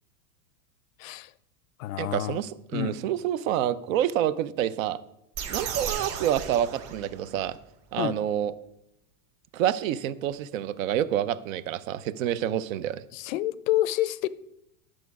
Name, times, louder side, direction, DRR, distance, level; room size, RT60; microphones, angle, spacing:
voice 1, 1.0-1.3 1.8-2.4 2.7-3.0 8.0-8.2 13.1-14.3, left 14 dB, 60° left, 0.5 m, -28 dB
voice 2, 2.0-5.0 5.5-7.6 7.9-8.5 9.5-13.0, right 11 dB, 60° right, 0.6 m, -28 dB
sound 1, 5.3-7.5, right 7 dB, 30° right, 1.3 m, -34 dB
10.5 x 6.3 x 4.7 m
supercardioid pair, 160°, 46 cm